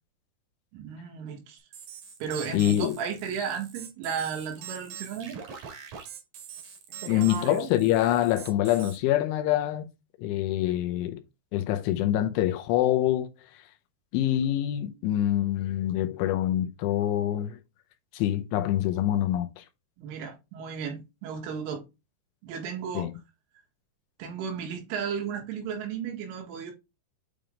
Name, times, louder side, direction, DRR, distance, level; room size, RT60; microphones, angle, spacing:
voice 1, 0.7-1.6 2.2-5.4 7.0-7.7 20.0-21.8 22.4-23.1 24.2-26.7, right 7 dB, 80° right, 4.3 m, -34 dB
sound 1, 1.7-9.0, right 8 dB, 55° right, 2.7 m, -43 dB
voice 2, 2.5-3.0 7.1-9.9 10.2-11.2 11.5-13.3 14.1-17.6 18.1-19.6 23.0-23.1, left 12 dB, 80° left, 3.1 m, -25 dB
8.9 x 3.5 x 3.6 m
omnidirectional pair, 5.7 m